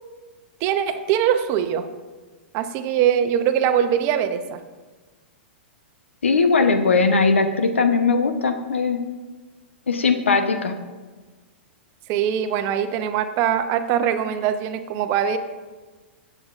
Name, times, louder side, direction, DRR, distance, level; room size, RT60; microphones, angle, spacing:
voice 1, 0.6-1.8 2.5-4.6 12.1-15.4, right 9 dB, 40° right, 9 dB, 0.8 m, -22 dB
voice 2, 6.2-9.0 9.9-10.7, left 4 dB, 85° left, 7 dB, 1.0 m, -19 dB
17.5 x 7.9 x 2.6 m, 1.3 s
hypercardioid pair, 110°, 6 cm